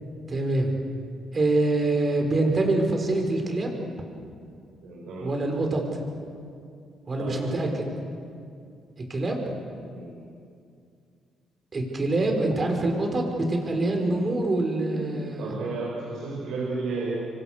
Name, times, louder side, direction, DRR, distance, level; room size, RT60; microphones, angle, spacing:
voice 1, 0.3-0.8 1.3-3.7 5.2-5.8 7.1-7.7 9.0-9.4 11.7-15.5, right 2 dB, 35° right, 2 dB, 5.9 m, -25 dB
voice 2, 4.8-5.5 7.2-7.8 9.9-10.1 15.4-17.1, right 3 dB, 80° right, -4 dB, 7.7 m, -33 dB
26.5 x 24.5 x 6.9 m, 2.4 s
cardioid pair, 90°, 0 cm